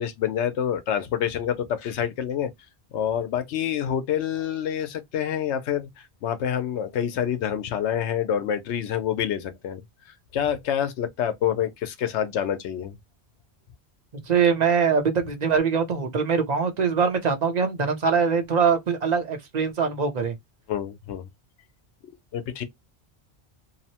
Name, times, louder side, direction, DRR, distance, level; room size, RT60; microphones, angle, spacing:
voice 1, 0.0-2.5 2.9-9.8 10.3-13.0 20.7-21.3 22.3-22.6, left 9 dB, 90° left, 0.9 m, -27 dB
voice 2, 14.3-20.3, right 6 dB, 45° right, 0.7 m, -23 dB
2.8 x 2.1 x 2.7 m
omnidirectional pair, 1.1 m